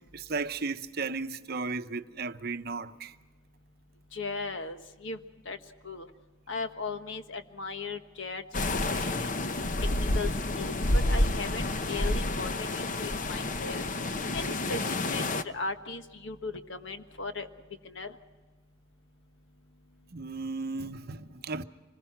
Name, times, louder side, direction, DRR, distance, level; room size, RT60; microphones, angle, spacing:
voice 1, 0.1-3.2 8.9-9.0 20.1-21.6, right 4 dB, 50° right, 0.8 m, -35 dB
voice 2, 4.1-5.2 5.4-5.6 5.8-6.1 6.5-9.3 10.0-10.3 10.6-13.8 14.3-14.8 15.1-17.5 17.8-18.1, left 3 dB, 65° left, 1.4 m, -37 dB
sound 1, 8.5-15.4, left 2 dB, 40° left, 0.8 m, -29 dB
26.0 x 20.0 x 5.9 m
head